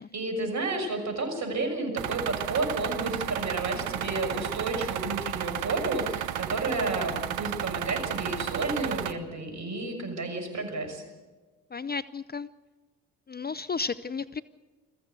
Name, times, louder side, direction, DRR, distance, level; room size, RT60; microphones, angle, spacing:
voice 1, 0.0-11.0, right 2 dB, 50° right, 6 dB, 6.3 m, -31 dB
sound 1, 2.0-9.1, right 11 dB, 75° right, 1.1 m, -33 dB
voice 2, 11.7-12.5 13.3-14.4, left 4 dB, 25° left, 16 dB, 0.6 m, -33 dB
22.0 x 15.0 x 8.1 m, 1.3 s
hypercardioid pair, 50°, 38 cm